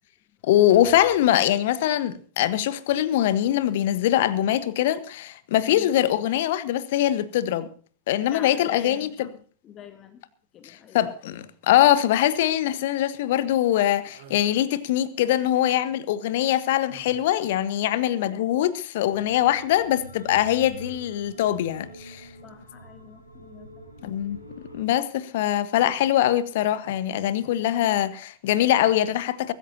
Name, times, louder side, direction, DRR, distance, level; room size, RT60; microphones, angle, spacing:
voice 1, 0.4-7.7 8.1-9.3 10.9-22.3 24.0-24.4 24.7-29.5, left 12 dB, 55° left, 1.3 m, -23 dB
Drum, 0.7-1.9, right 4 dB, 80° right, 3.3 m, -50 dB
voice 2, 5.6-5.9 8.3-9.3 9.6-10.2 10.5-11.1 22.4-24.1, left 8 dB, 30° left, 2.0 m, -46 dB
sound 1, 14.1-14.6 16.9-17.6, right 5 dB, 55° right, 6.5 m, -49 dB
sound 2, 19.0-24.8, right 1 dB, 90° left, 3.8 m, -45 dB
23.0 x 13.5 x 2.8 m
figure-of-eight pair, 90°, 0 cm